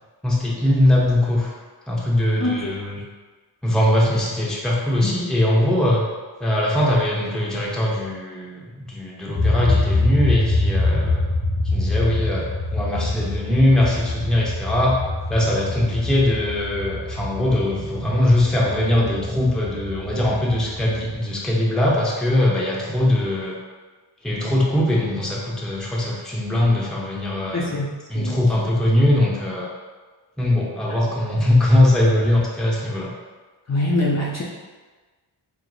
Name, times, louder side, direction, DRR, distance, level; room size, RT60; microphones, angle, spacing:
voice 1, 0.2-1.5 1.9-3.0 3.6-6.0 6.4-11.2 11.7-15.0 15.3-23.6 24.2-27.7 28.1-29.7 30.4-33.1, left 1 dB, ahead, -4 dB, 0.7 m, -21 dB
voice 2, 2.4-2.7 5.0-5.1 27.5-27.9 28.1-28.4 33.7-34.4, left 2 dB, 35° left, -4 dB, 0.6 m, -23 dB
sound 1, 9.3-21.2, left 2 dB, 75° left, 1.2 m, -25 dB
4.7 x 2.0 x 3.9 m, 1.3 s
wide cardioid pair, 80°, 47 cm